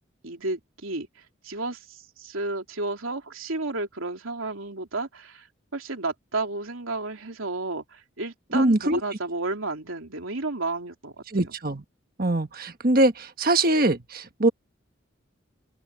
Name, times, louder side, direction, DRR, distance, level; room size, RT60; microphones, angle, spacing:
voice 1, 0.2-1.1 1.4-5.5 5.7-11.1 11.4-11.5, right 2 dB, 85° right, 3.2 m, -32 dB
voice 2, 8.5-9.0 11.3-11.8 12.2-14.5, right 1 dB, 45° right, 1.4 m, -22 dB
head